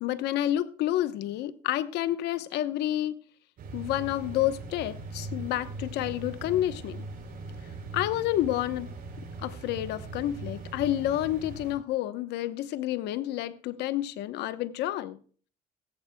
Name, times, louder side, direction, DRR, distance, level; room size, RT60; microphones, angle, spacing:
voice 1, 0.0-3.2 3.7-7.1 7.9-8.9 9.4-15.2, left 13 dB, 85° left, 0.9 m, -29 dB
sound 1, 3.6-11.7, right 3 dB, 55° right, 5.5 m, -40 dB
16.0 x 14.5 x 2.2 m
cardioid pair, 110°, 17 cm